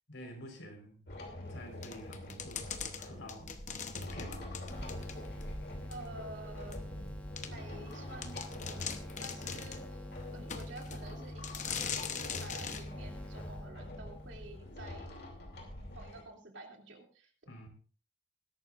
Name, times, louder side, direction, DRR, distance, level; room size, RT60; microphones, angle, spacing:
voice 1, 0.1-1.0 1.5-2.7 3.0-3.5 4.0-4.4 17.5-17.7, equal, 80° left, 2 dB, 4.4 m, -48 dB
sound 1, 1.1-16.2, left 1 dB, 55° left, 2.9 m, -45 dB
sound 2, 1.8-5.5 5.9-6.0 6.7-6.8 7.4-7.5 7.9-8.0 8.2-9.9 10.5-11.0 11.4-12.9, left 7 dB, 40° left, 0.9 m, -41 dB
sound 3, 4.7-14.6, left 1 dB, 10° left, 1.4 m, -48 dB
voice 2, 5.9-6.9 7.5-10.1 10.3-15.2 15.9-17.3, right 2 dB, 70° right, 1 dB, 2.8 m, -50 dB
20.5 x 11.5 x 2.5 m, 0.40 s
head